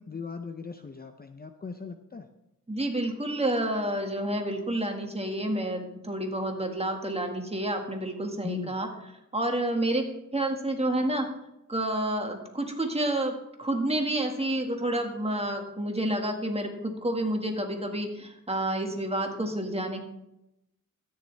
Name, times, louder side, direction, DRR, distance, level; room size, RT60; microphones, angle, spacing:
voice 1, 0.0-2.3 8.4-8.8, left 4 dB, 30° left, 7 dB, 0.6 m, -38 dB
voice 2, 2.7-8.9 9.3-11.3 11.7-20.0, right 1 dB, 15° right, 3 dB, 1.8 m, -29 dB
13.5 x 9.5 x 3.4 m, 0.88 s
wide cardioid pair, 105°, 34 cm